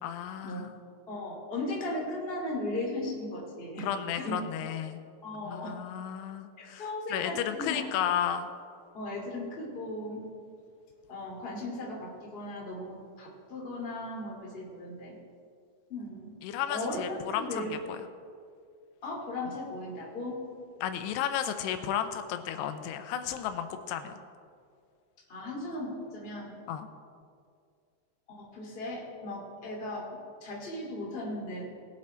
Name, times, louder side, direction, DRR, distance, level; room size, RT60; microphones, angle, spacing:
voice 1, 0.0-0.7 3.8-5.0 5.4-6.8 7.1-8.5 16.4-17.7 20.8-24.1 26.7-26.9, left 9 dB, 90° left, 9 dB, 2.7 m, -33 dB
voice 2, 1.1-3.9 4.2-4.4 5.2-5.8 6.6-7.9 8.9-10.2 11.1-15.1 15.9-16.3 16.7-17.8 19.0-20.4 25.3-26.5 28.3-31.7, left 1 dB, 20° left, -3 dB, 1.8 m, -37 dB
20.0 x 7.6 x 4.3 m, 2.2 s
omnidirectional pair, 4.7 m